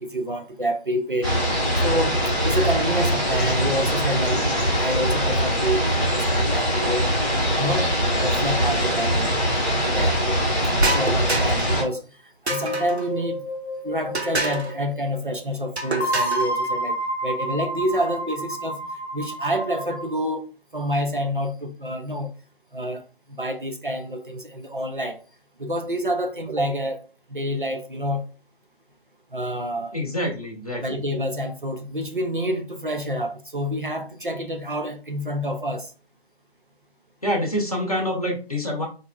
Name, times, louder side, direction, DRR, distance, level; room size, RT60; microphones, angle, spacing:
voice 1, 0.0-1.3 1.8-2.2 2.4-7.1 7.6-7.9 8.2-9.4 9.9-10.4 10.8-12.0 12.5-13.4 13.8-18.8 19.1-20.5 20.7-22.3 22.7-23.0 23.4-25.2 25.6-27.0 27.3-28.3 29.3-30.0 30.8-35.9, equal, 55° right, 0.4 m, -28 dB
sound 1, 1.2-11.8, equal, 20° right, 1.2 m, -22 dB
sound 2, 10.8-11.8 12.5-13.1 14.1-14.7 15.8-16.5, right 2 dB, 75° right, 0.9 m, -26 dB
sound 3, 12.5-14.8 16.0-20.2, equal, 90° left, 0.7 m, -29 dB
voice 2, 29.9-31.0 37.2-38.9, equal, 35° left, 0.8 m, -26 dB
4.0 x 2.4 x 2.2 m
figure-of-eight pair, 180°, 32 cm